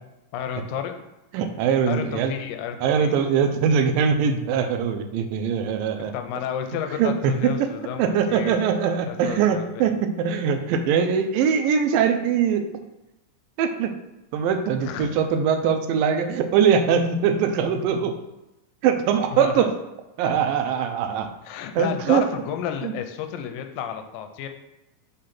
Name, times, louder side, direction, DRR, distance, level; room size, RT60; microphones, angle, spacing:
voice 1, 0.3-1.0 1.9-3.2 6.0-8.6 9.1-9.9 14.8-15.2 19.3-19.7 21.4-24.5, left 9 dB, 90° left, 7 dB, 2.3 m, -32 dB
voice 2, 1.3-2.3 2.8-6.1 7.0-7.7 8.0-12.7 13.6-14.0 14.3-18.2 18.8-19.7 20.2-21.3 21.8-22.2 22.8-22.9, right 7 dB, 85° right, 7 dB, 2.3 m, -22 dB
5.5 x 3.8 x 5.8 m, 0.94 s
omnidirectional pair, 4.0 m